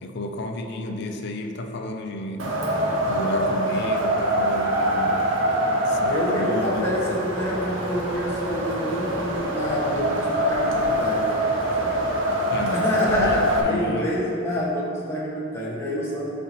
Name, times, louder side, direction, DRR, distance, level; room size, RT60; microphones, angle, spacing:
voice 1, 0.0-2.6 3.1-5.3 5.9-6.9 12.5-14.1, left 2 dB, 50° left, 4 dB, 0.5 m, -31 dB
Wind, 2.4-13.6, right 1 dB, 60° right, 0.7 m, -24 dB
voice 2, 6.1-11.3 11.8-12.0 12.7-16.3, left 1 dB, 10° left, -6 dB, 1.0 m, -27 dB
9.3 x 4.1 x 2.9 m, 2.7 s
head